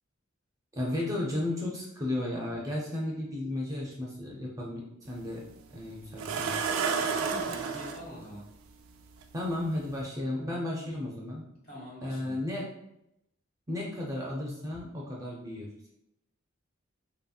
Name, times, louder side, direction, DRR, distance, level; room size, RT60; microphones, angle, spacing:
voice 1, 0.8-6.5 9.3-11.4 12.0-12.7 13.7-15.9, left 1 dB, 15° right, -3 dB, 0.4 m, -34 dB
sound 1, 5.1-5.2 6.2-8.0 9.2-9.3 9.8-10.0, right 5 dB, 85° right, 0.3 m, -30 dB
voice 2, 7.0-8.5 11.6-12.4 14.7-14.8, equal, 50° left, -4 dB, 1.1 m, -44 dB
2.7 x 2.7 x 2.3 m, 0.82 s
head